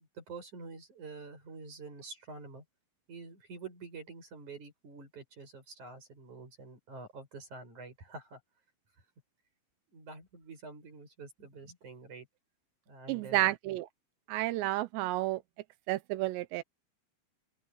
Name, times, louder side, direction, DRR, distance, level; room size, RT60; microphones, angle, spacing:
voice 1, 0.1-2.6 3.1-8.4 9.9-12.3 12.9-13.5, right 4 dB, 35° right, 9.2 m, -47 dB
voice 2, 13.1-13.9 14.3-15.4 15.9-16.6, right 17 dB, 80° right, 2.6 m, -31 dB
open air
omnidirectional pair, 5.9 m